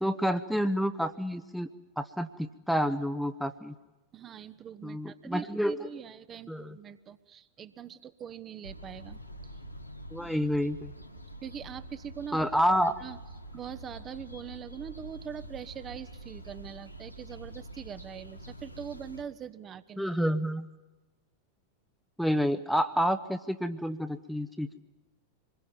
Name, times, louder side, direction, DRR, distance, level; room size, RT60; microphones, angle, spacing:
voice 1, 0.0-1.7 2.0-3.7 4.8-5.9 6.5-6.8 10.1-10.9 12.3-13.0 20.0-20.7 22.2-24.8, equal, ahead, 9 dB, 1.0 m, -29 dB
voice 2, 4.1-9.2 11.4-12.5 13.0-13.2 13.5-20.1, right 8 dB, 25° right, 12 dB, 1.1 m, -42 dB
sound 1, 8.6-19.2, right 1 dB, 90° left, 1.7 m, -46 dB
25.5 x 22.0 x 7.2 m, 1.1 s
figure-of-eight pair, 90°, 0 cm